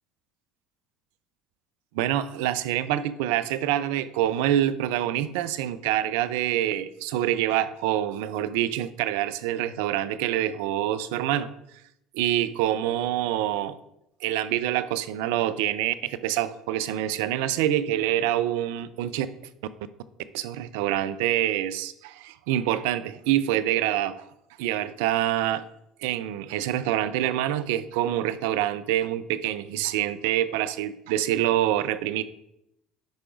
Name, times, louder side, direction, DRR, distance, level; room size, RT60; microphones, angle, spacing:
voice 1, 1.9-11.5 12.1-13.8 14.2-19.3 20.3-24.2 24.6-25.6 26.0-32.2, right 12 dB, 75° right, 15 dB, 0.4 m, -26 dB
10.5 x 4.8 x 2.5 m, 0.79 s
hypercardioid pair, 70°, 0 cm